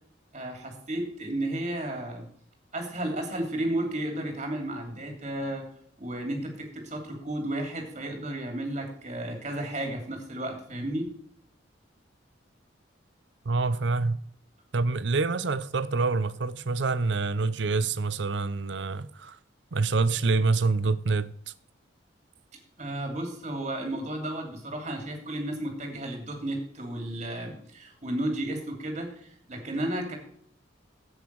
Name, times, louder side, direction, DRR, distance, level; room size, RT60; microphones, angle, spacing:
voice 1, 0.3-2.3 2.7-5.7 6.0-11.1 22.8-30.2, right 1 dB, 35° right, 2.8 m, -33 dB
voice 2, 13.4-14.2 14.7-19.4 19.7-21.3, right 3 dB, 65° right, 0.6 m, -26 dB
10.5 x 8.2 x 4.7 m
head